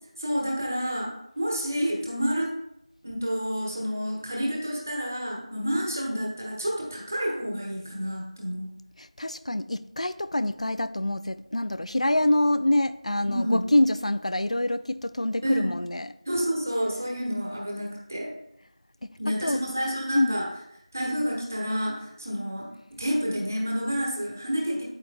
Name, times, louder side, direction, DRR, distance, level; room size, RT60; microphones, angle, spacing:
voice 1, 0.2-1.1 1.4-2.5 3.0-8.7 13.3-13.6 15.4-15.7 16.2-18.3 19.2-20.4 20.9-22.7 23.0-24.8, equal, 25° right, -3 dB, 1.2 m, -29 dB
voice 2, 9.0-16.1 19.3-19.6 20.1-20.4, left 1 dB, 80° left, 14 dB, 0.4 m, -25 dB
8.9 x 7.7 x 2.2 m, 0.82 s
figure-of-eight pair, 180°, 3 cm